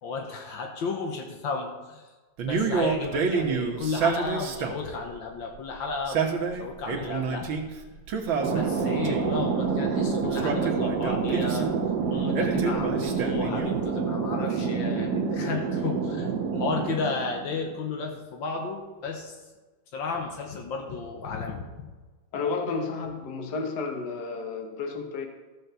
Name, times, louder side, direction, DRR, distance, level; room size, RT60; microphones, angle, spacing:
voice 1, 0.0-2.0 2.4-6.2 6.5-7.5 7.9-8.0 8.5-11.7 12.1-19.4 19.9-21.9, left 4 dB, 75° left, 2 dB, 1.9 m, -33 dB
Male speech man speaking, 2.4-4.9 5.9-7.7 8.1-9.4 10.2-11.7 12.3-13.9, right 5 dB, 90° right, 2.0 m, -28 dB
Thunder, 8.4-17.7, right 5 dB, 60° right, 1.7 m, -28 dB
voice 2, 22.3-25.3, left 4 dB, 60° left, 4 dB, 1.8 m, -31 dB
14.0 x 5.2 x 6.8 m, 1.3 s
omnidirectional pair, 2.1 m